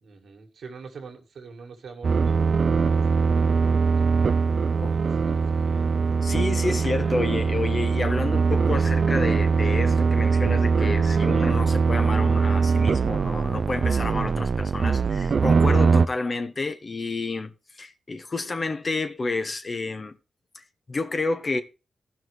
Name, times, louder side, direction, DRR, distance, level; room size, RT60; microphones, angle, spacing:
voice 1, 0.0-3.9 4.8-5.9, right 5 dB, 80° right, 1.9 m, -44 dB
sound 1, 2.0-16.1, right 5 dB, 65° right, 0.5 m, -22 dB
voice 2, 6.2-20.2 20.5-21.6, left 3 dB, 50° left, 1.3 m, -30 dB
15.5 x 6.0 x 3.2 m
cardioid pair, 50°, 0 cm